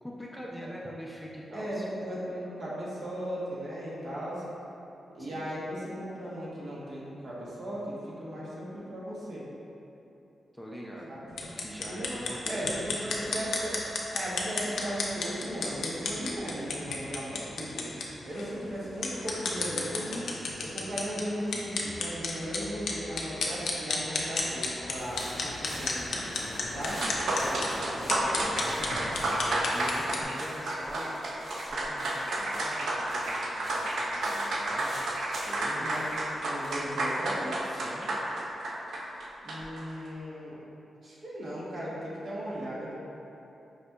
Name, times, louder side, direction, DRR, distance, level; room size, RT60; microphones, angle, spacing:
voice 1, 0.0-1.9 5.2-5.5 10.5-11.2 11.6-13.4 27.3-35.9 37.6-38.1, equal, ahead, -4 dB, 0.3 m, -44 dB
voice 2, 1.5-4.4 5.1-9.5 11.1-11.2 11.8-13.8 14.1-20.3 20.6-26.1 26.7-27.0 35.8-36.1 36.4-37.5 39.4-40.6 41.0-42.9, equal, 60° right, -7 dB, 0.8 m, -37 dB
sound 1, 11.3-30.2, left 3 dB, 80° left, 0.4 m, -34 dB
sound 2, 24.9-37.7, equal, 45° right, 1.1 m, -47 dB
sound 3, 26.6-26.7 26.9-39.8, right 1 dB, 80° right, 0.4 m, -31 dB
5.0 x 2.7 x 2.2 m, 2.9 s
wide cardioid pair, 130°, 0 cm